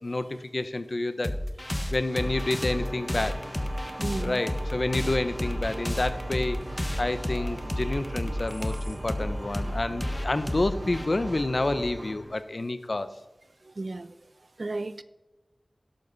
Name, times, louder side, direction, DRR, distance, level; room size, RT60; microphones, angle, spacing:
voice 1, 0.0-1.4 1.9-3.4 4.2-6.6 7.0-13.1, left 2 dB, 60° left, 0.9 m, -29 dB
sound 1, 1.2-12.3, left 1 dB, 30° left, 1.3 m, -32 dB
sound 2, 2.1-12.1, right 1 dB, 40° right, 3.6 m, -43 dB
voice 2, 4.0-4.4 13.7-14.1 14.6-15.0, right 2 dB, 70° right, 0.6 m, -33 dB
sound 3, 4.7-12.2, right 2 dB, 90° right, 2.3 m, -40 dB
12.0 x 11.5 x 4.1 m
wide cardioid pair, 40°, 0 cm